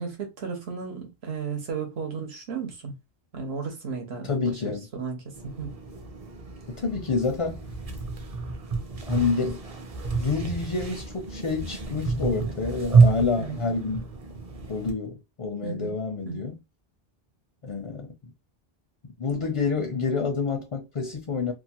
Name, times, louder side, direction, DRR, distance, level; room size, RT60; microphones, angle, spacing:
voice 1, 0.0-2.9 3.3-4.6 4.9-5.2 5.4-5.7 13.4-13.7 15.6-16.0 16.2-16.5, right 5 dB, 85° right, 1.2 m, -34 dB
voice 2, 4.2-4.9 6.7-7.6 9.0-9.6 10.2-14.1 14.7-16.6 17.6-18.1 19.2-21.5, left 4 dB, 45° left, 0.4 m, -28 dB
sound 1, 5.3-14.9, right 4 dB, 40° right, 0.6 m, -27 dB
2.7 x 2.3 x 2.7 m
omnidirectional pair, 1.0 m